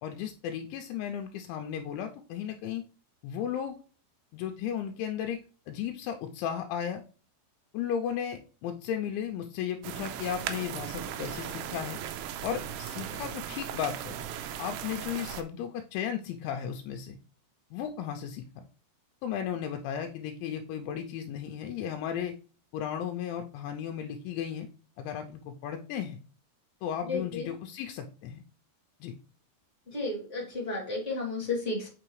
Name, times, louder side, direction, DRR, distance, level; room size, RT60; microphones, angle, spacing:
voice 1, 0.0-2.9 3.2-3.8 4.3-5.4 5.7-7.0 7.7-12.0 12.4-14.2 14.6-17.2 17.7-18.7 19.2-22.3 22.7-24.7 25.0-26.2 26.8-28.4 29.0-29.1, left 9 dB, 85° left, 5 dB, 2.8 m, -35 dB
sound 1, 9.8-15.4, right 10 dB, 85° right, 2.4 m, -37 dB
voice 2, 27.0-27.5 29.9-31.9, left 3 dB, 25° left, -3 dB, 1.6 m, -32 dB
7.7 x 5.5 x 3.1 m, 0.38 s
omnidirectional pair, 5.6 m